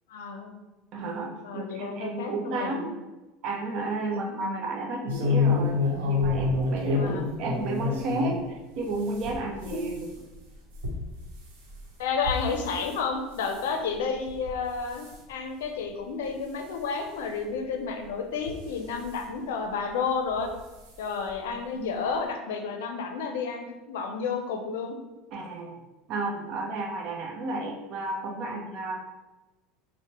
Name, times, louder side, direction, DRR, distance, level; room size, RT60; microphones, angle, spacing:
voice 1, 0.1-0.5 1.4-2.8 4.0-4.6 7.0-7.3 9.7-9.8 12.0-20.5 21.0-25.0, left 5 dB, 90° left, 4 dB, 0.5 m, -31 dB
voice 2, 0.9-3.0 3.4-5.8 6.0-10.1 25.3-29.0, right 2 dB, 55° right, 2 dB, 0.6 m, -32 dB
sound 1, 5.1-8.4 8.8-13.0 13.4-13.7 14.3-14.6 14.9-15.2 15.8-15.9 16.2-16.3 17.5-17.6 18.3-19.2 20.3-20.5 20.9-21.0 21.3-21.4, left 4 dB, 90° right, 0.9 m, -29 dB
4.5 x 2.1 x 2.9 m, 1.1 s
supercardioid pair, 115°, 0 cm